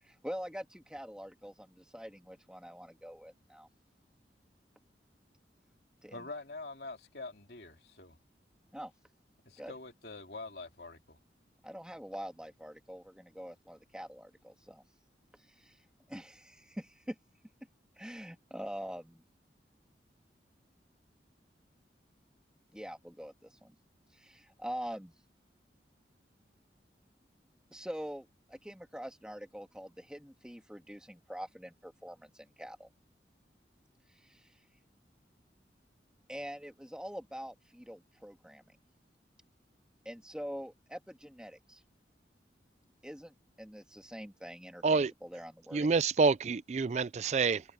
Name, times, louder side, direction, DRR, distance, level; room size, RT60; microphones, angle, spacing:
voice 1, 0.0-3.7 6.0-6.3 8.7-8.9 9.6-9.7 11.6-14.8 15.5-15.8 16.1-17.2 18.0-19.2 22.7-23.7 24.1-25.1 27.7-32.9 34.1-34.6 36.3-38.8 40.1-41.8 43.0-45.9, equal, 5° right, 2.0 m, -44 dB
voice 2, 6.1-8.2 9.4-11.2, left 3 dB, 65° left, 3.3 m, -45 dB
voice 3, 45.7-47.6, right 4 dB, 40° right, 0.4 m, -27 dB
head